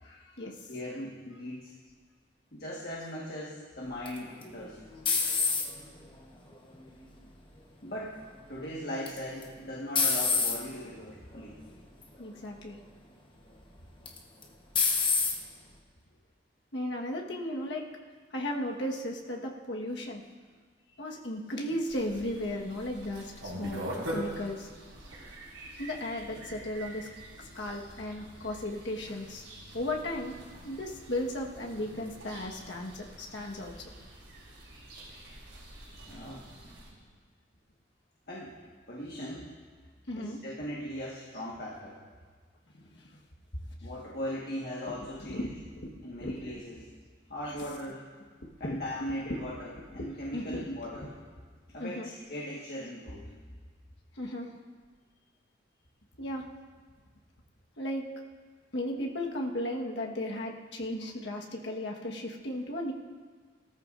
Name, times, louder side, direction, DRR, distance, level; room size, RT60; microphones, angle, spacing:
voice 1, 0.0-0.5 12.2-12.8 16.7-17.9 18.3-20.2 21.0-23.8 24.1-24.7 25.8-27.1 27.5-29.4 29.7-33.7 40.1-40.4 42.7-42.8 45.0-46.3 47.5-47.6 49.2-49.4 50.3-50.6 51.8-52.1 54.2-54.5 56.2-56.4 57.8-58.0 58.7-62.9, left 1 dB, 70° left, 0 dB, 1.5 m, -35 dB
voice 2, 0.7-1.7 2.5-4.8 7.8-8.2 8.5-11.6 15.2-15.3 36.1-36.5 38.3-38.6 38.9-39.5 40.1-42.0 43.5-45.5 46.0-46.9 47.3-48.1 48.6-51.2 51.7-53.3, equal, 55° left, -5 dB, 1.6 m, -39 dB
sound 1, 4.1-6.0 6.5-7.0 9.1-9.4 10.0-10.6 11.4-11.6 12.0-12.1 14.1-14.4 14.8-15.4, left 4 dB, 25° left, 1.1 m, -27 dB
sound 2, 21.9-36.9, right 1 dB, 90° right, 4.1 m, -44 dB
18.0 x 13.5 x 2.6 m, 1.6 s
head